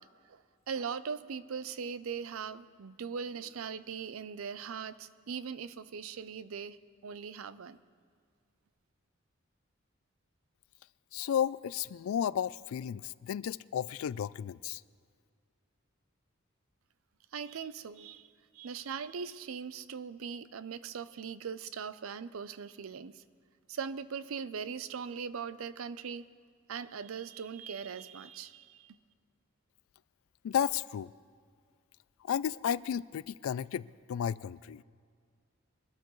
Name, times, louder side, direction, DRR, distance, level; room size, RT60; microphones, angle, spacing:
voice 1, 0.0-7.8 17.3-23.2 23.7-26.3 26.7-29.0, right 6 dB, 90° right, 0.5 m, -40 dB
voice 2, 11.1-14.8 30.4-31.1 32.3-34.8, left 9 dB, 85° left, 0.3 m, -33 dB
23.0 x 12.5 x 3.1 m
head